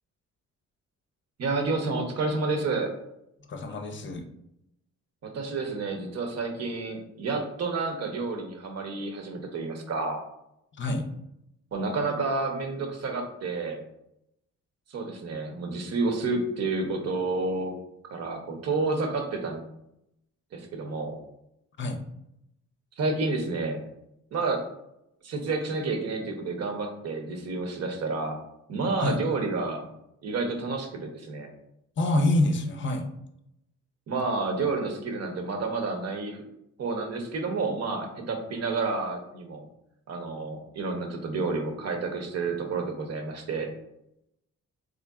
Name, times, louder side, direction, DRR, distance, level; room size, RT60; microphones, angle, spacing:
voice 1, 1.4-2.9 5.2-10.2 11.7-13.8 14.9-17.7 18.1-19.6 20.5-21.2 23.0-23.8 24.3-24.6 25.2-28.4 28.7-29.9 30.2-31.5 34.1-36.4 36.8-39.6 40.1-43.7, right 3 dB, 55° right, 4 dB, 0.9 m, -30 dB
voice 2, 3.5-4.2 10.8-11.1 21.8-22.0 29.0-29.2 32.0-33.1, left 1 dB, 40° left, 6 dB, 0.6 m, -26 dB
3.8 x 3.3 x 2.3 m, 0.81 s
cardioid pair, 90°, 30 cm